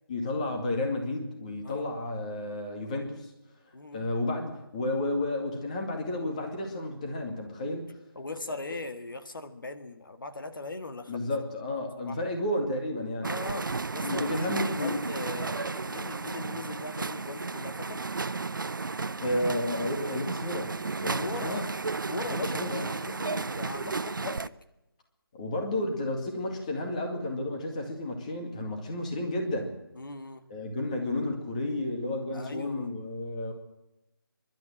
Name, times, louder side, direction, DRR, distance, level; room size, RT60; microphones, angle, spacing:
voice 1, 0.1-3.3 3.9-7.9 8.7-8.8 11.1-13.3 14.0-15.1 19.2-21.6 22.4-22.9 25.3-29.8 30.5-33.5, left 1 dB, 20° left, 2 dB, 2.2 m, -32 dB
voice 2, 3.7-4.1 8.2-11.3 12.1-12.2 13.2-18.0 21.1-21.7 22.1-24.5 30.0-30.5 32.3-32.9, left 2 dB, 60° left, 8 dB, 1.8 m, -40 dB
sound 1, 13.2-24.5, right 4 dB, 60° right, 0.7 m, -33 dB
24.5 x 12.0 x 8.9 m, 0.96 s
figure-of-eight pair, 175°, 12 cm